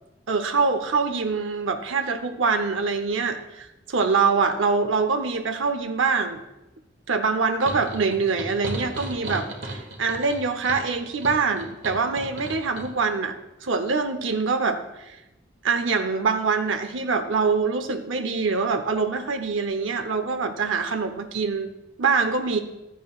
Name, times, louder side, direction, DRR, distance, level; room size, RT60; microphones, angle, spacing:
voice 1, 0.3-6.4 7.1-13.3 13.6-14.8 15.1-15.2 15.6-21.7 22.0-22.6, right 4 dB, 85° right, 8 dB, 0.7 m, -24 dB
sound 1, 7.6-12.9, right 1 dB, 65° right, 1.8 m, -35 dB
15.0 x 11.0 x 2.4 m, 0.96 s
head